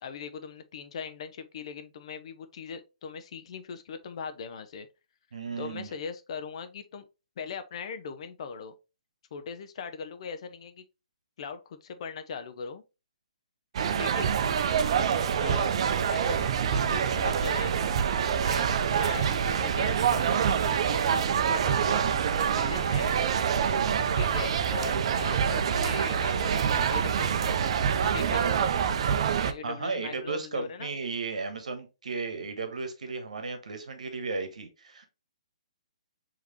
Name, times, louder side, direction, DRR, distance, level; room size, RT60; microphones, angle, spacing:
voice 1, 0.0-4.9 5.6-7.0 7.4-8.7 9.3-10.8 11.4-12.8 13.9-14.3 15.3-15.7 16.1-17.8 18.4-22.1 22.5-23.1 24.1-27.4 27.9-28.7 29.4-31.0, left 6 dB, 50° left, 0.6 m, -40 dB
voice 2, 5.3-5.9 23.8-24.1 29.6-35.1, right 4 dB, 70° right, 1.1 m, -35 dB
sound 1, 13.7-29.5, right 7 dB, 50° right, 0.5 m, -26 dB
4.9 x 2.9 x 2.9 m
hypercardioid pair, 135°, 4 cm